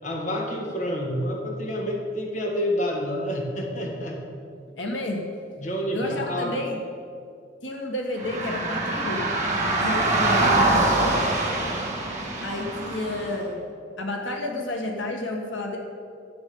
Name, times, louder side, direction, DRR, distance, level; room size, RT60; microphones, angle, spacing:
voice 1, 0.0-4.2 5.6-6.6, equal, 40° left, 0 dB, 1.9 m, -28 dB
voice 2, 4.8-5.3 5.9-6.8 7.6-9.2 9.8-11.1 12.4-13.6 14.0-15.8, left 1 dB, 85° left, 1 dB, 1.7 m, -30 dB
sound 1, 8.2-13.4, right 2 dB, 15° right, 2.8 m, -24 dB
12.0 x 8.2 x 7.0 m, 2.3 s
head